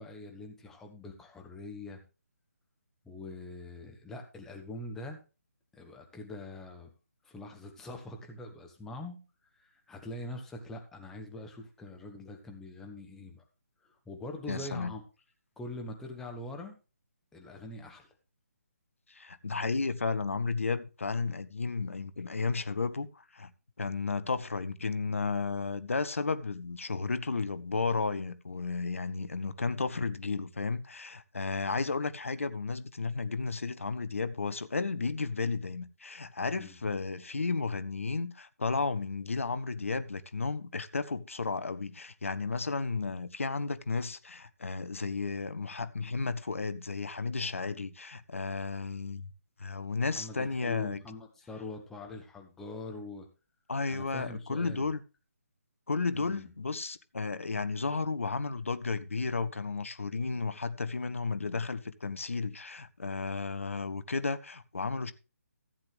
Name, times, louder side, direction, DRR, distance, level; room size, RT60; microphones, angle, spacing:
voice 1, 0.0-2.0 3.0-5.2 5.7-6.9 7.2-9.2 9.5-13.4 13.8-15.0 15.6-16.8 17.3-18.1 36.6-36.8 50.1-53.3 53.9-54.9 56.1-56.5, left 2 dB, 5° left, 1.2 m, -43 dB
voice 2, 14.5-14.9 19.1-23.5 23.8-49.3 49.6-51.0 53.7-55.0 55.9-65.1, left 4 dB, 60° left, 0.9 m, -33 dB
14.5 x 7.9 x 3.5 m
figure-of-eight pair, 145°, 8 cm